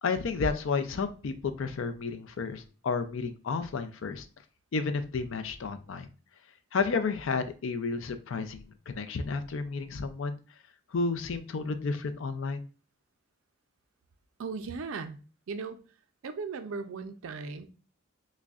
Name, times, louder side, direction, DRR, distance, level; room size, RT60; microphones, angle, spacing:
voice 1, 0.0-4.3 4.7-6.1 6.7-10.4 10.9-12.6, left 4 dB, 65° left, 10 dB, 0.4 m, -31 dB
voice 2, 14.4-15.2 15.5-15.8 16.2-17.7, right 4 dB, 70° right, 9 dB, 0.4 m, -37 dB
6.0 x 2.1 x 2.4 m, 0.35 s
head